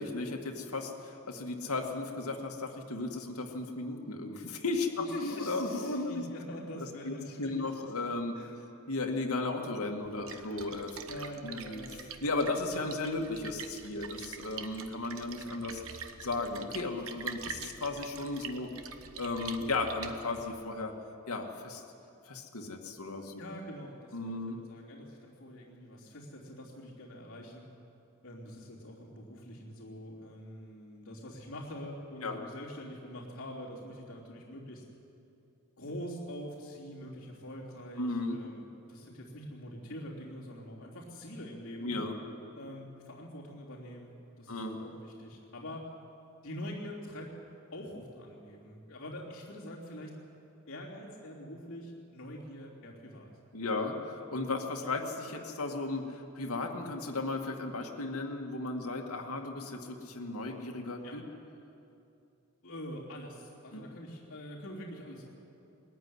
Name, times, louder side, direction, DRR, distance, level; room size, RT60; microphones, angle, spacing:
voice 1, 0.0-6.2 6.8-8.3 8.9-11.0 11.4-11.8 12.2-18.7 19.2-20.9 21.3-21.8 22.3-23.4 24.1-24.6 32.2-32.4 38.0-38.4 41.8-42.2 44.5-44.8 53.5-61.2 63.7-63.8, left 2 dB, 85° left, 2 dB, 2.1 m, -35 dB
voice 2, 5.0-7.7 8.3-8.6 10.3-10.7 11.0-12.1 23.4-27.7 28.2-34.8 35.8-41.9 42.5-44.1 44.4-45.9 46.4-47.3 47.7-50.2 50.7-53.3 61.0-61.2 62.6-65.3, equal, 60° left, -8 dB, 3.4 m, -44 dB
Splash splatter, 10.0-20.6, right 6 dB, 65° right, 1.1 m, -45 dB
21.0 x 14.0 x 9.7 m, 2.7 s
head